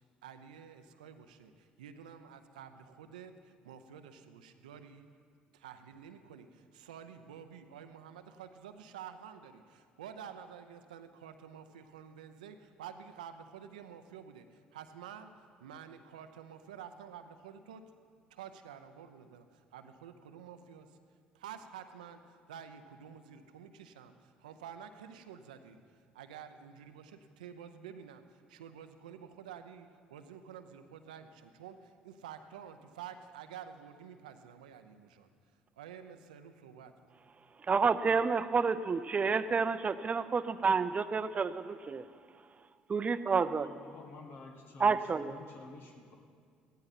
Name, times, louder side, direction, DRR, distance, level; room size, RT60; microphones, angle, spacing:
voice 1, 0.0-5.1 5.5-18.0 18.3-21.0 21.3-35.3 35.8-37.0, right 8 dB, 90° right, 8 dB, 0.7 m, -50 dB
voice 2, 37.6-42.1 42.9-43.7 44.8-45.4, right 5 dB, 35° right, 13 dB, 0.6 m, -29 dB
voice 3, 43.6-46.2, left 3 dB, 60° left, 2 dB, 1.5 m, -50 dB
16.0 x 13.0 x 4.2 m, 2.1 s
hypercardioid pair, 60°, 4 cm